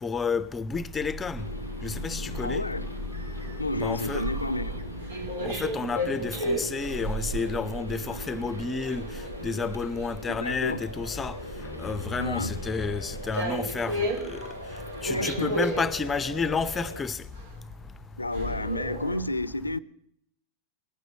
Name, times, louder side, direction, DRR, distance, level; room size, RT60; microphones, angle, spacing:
voice 1, 0.0-1.5 1.8-2.7 3.7-4.3 5.4-9.0 9.4-14.4 15.0-17.2, left 4 dB, 15° left, 0.7 m, -31 dB
sound 1, 0.7-19.2, right 1 dB, 65° right, 2.6 m, -35 dB
sound 2, 1.4-17.0, equal, 85° right, 1.3 m, -41 dB
voice 2, 2.4-2.9 3.6-4.8 10.3-10.8 12.2-12.5 15.1-15.5 18.2-19.8, left 1 dB, 80° left, 0.6 m, -30 dB
20.0 x 9.3 x 7.6 m
figure-of-eight pair, 90°, 0 cm